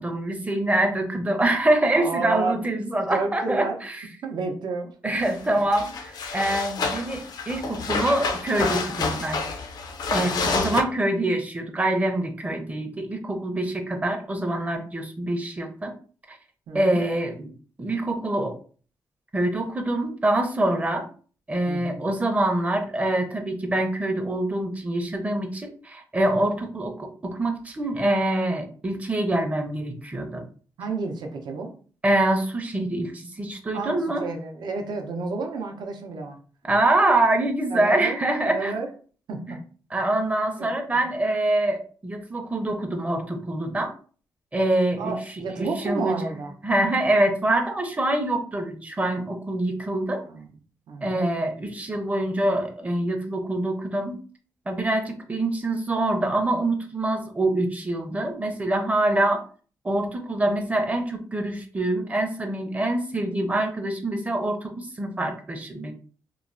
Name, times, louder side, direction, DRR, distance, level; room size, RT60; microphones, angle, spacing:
voice 1, 0.0-4.0 5.0-9.4 10.1-15.9 16.3-16.4 16.7-17.5 17.8-18.6 19.3-21.1 21.5-30.4 32.0-34.3 36.7-38.7 39.5-39.6 39.9-43.9 44.5-45.1 45.6-46.1 46.6-50.2 51.0-54.2 54.7-59.5 59.8-65.9, right 1 dB, 20° right, 4 dB, 0.5 m, -25 dB
voice 2, 1.9-2.6 3.1-3.8 4.2-4.9 10.2-10.5 16.7-17.0 21.7-22.0 30.8-31.7 33.7-36.4 37.7-38.9 39.3-39.6 40.6-41.0 45.0-46.5 50.2-50.5 50.9-51.2, right 4 dB, 75° right, 3 dB, 0.6 m, -31 dB
sound 1, 5.2-5.4 5.7-10.8, left 4 dB, 65° left, 0.4 m, -28 dB
3.0 x 2.0 x 2.5 m, 0.41 s
cardioid pair, 105°, 7 cm